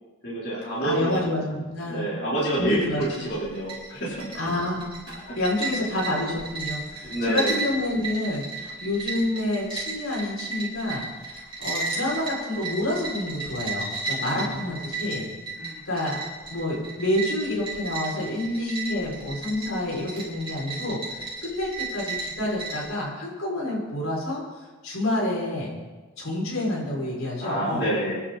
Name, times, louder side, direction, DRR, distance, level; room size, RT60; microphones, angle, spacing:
voice 1, 0.2-1.2 1.9-4.3 7.0-7.6 14.2-14.6 15.6-15.8 27.4-28.2, right 1 dB, 55° left, -7 dB, 4.3 m, -28 dB
voice 2, 0.8-2.1 2.6-3.0 4.3-4.9 5.4-15.3 15.8-16.2 16.5-25.7 26.2-27.9, left 1 dB, 85° left, -4 dB, 6.4 m, -28 dB
sound 1, 3.0-22.9, right 3 dB, 25° right, 5.0 m, -34 dB
27.0 x 11.0 x 4.3 m, 1.2 s
head